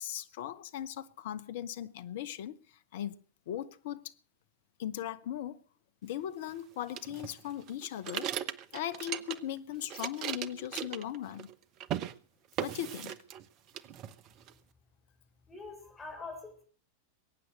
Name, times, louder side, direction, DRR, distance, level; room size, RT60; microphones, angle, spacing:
voice 1, 0.0-3.2 3.5-4.1 4.8-5.6 6.0-8.3 8.7-11.5 12.6-13.2, left 11 dB, 55° left, 1.1 m, -38 dB
sound 1, 6.9-9.6 9.8-11.5 11.8-12.1 12.6-13.5 13.7-14.5, right 10 dB, 40° right, 0.9 m, -38 dB
voice 2, 15.5-16.6, left 3 dB, 15° left, 5.9 m, -44 dB
22.0 x 9.6 x 6.4 m
figure-of-eight pair, 90°, 0 cm